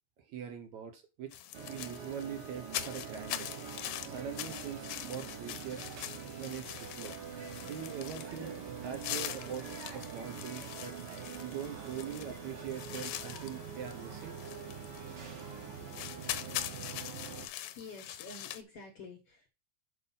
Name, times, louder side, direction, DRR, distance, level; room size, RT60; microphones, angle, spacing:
voice 1, 0.2-1.3 1.7-3.5 4.0-5.9 6.4-7.2 7.7-8.6 8.8-9.7 9.9-11.0 11.4-14.4, right 8 dB, 65° right, 6 dB, 2.1 m, -42 dB
sound 1, 1.3-18.6, left 13 dB, 85° left, 2.3 m, -43 dB
sound 2, 1.5-17.5, right 7 dB, 85° right, 3.2 m, -45 dB
sound 3, 3.6-15.9, right 2 dB, 40° right, 1.8 m, -55 dB
voice 2, 17.3-19.5, left 3 dB, 55° left, 3 dB, 1.7 m, -49 dB
6.9 x 5.2 x 5.4 m, 0.29 s
omnidirectional pair, 3.9 m